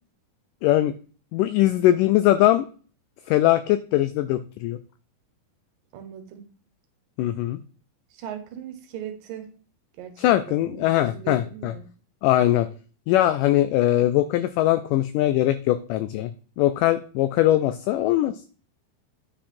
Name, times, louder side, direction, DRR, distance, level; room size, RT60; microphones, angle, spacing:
voice 1, 0.6-0.9 1.3-2.7 3.3-4.8 7.2-7.6 10.2-11.7 12.2-12.7 13.1-16.3 16.6-18.4, left 14 dB, 90° left, 12 dB, 1.8 m, -21 dB
voice 2, 5.9-6.4 8.1-9.5 10.0-11.8, right 9 dB, 70° right, 8 dB, 2.6 m, -38 dB
9.7 x 5.9 x 4.3 m, 0.40 s
omnidirectional pair, 4.3 m